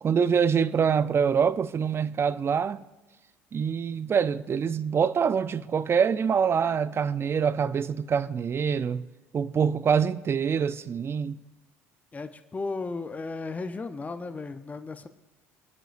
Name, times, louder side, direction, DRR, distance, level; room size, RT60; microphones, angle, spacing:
voice 1, 0.0-2.8 3.5-9.1 9.3-11.4, right 7 dB, 35° right, 0.6 m, -25 dB
voice 2, 12.1-15.1, left 3 dB, 20° left, 0.8 m, -35 dB
27.0 x 9.1 x 2.6 m
hypercardioid pair, 70°, 7 cm